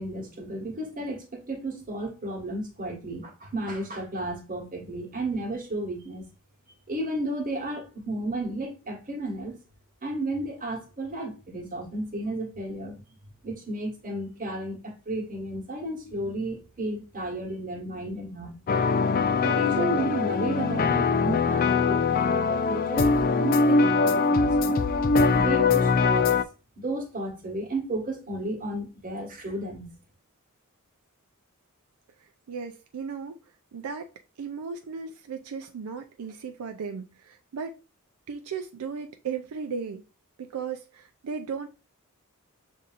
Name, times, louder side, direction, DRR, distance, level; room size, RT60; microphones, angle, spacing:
voice 1, 0.0-6.2 6.9-9.6 10.0-13.0 13.4-18.6 19.4-24.8 25.3-26.3 26.8-29.9, right 1 dB, 40° right, 1.4 m, -33 dB
sound 1, 18.7-26.4, left 4 dB, 40° left, 0.3 m, -22 dB
voice 2, 32.5-33.4 33.7-34.1 34.4-37.7 38.3-40.0 40.4-41.7, right 6 dB, 80° right, 0.4 m, -35 dB
6.7 x 2.7 x 2.5 m
head